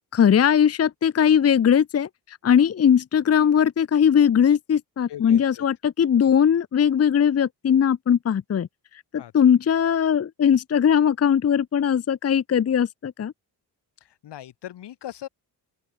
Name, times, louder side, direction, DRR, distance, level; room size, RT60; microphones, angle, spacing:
voice 1, 0.1-8.7 9.1-13.3, left 8 dB, 35° left, 0.8 m, -20 dB
voice 2, 5.1-5.6 6.2-6.3 9.2-9.3 14.0-15.3, left 12 dB, 85° left, 4.7 m, -39 dB
open air
cardioid pair, 115°, 40 cm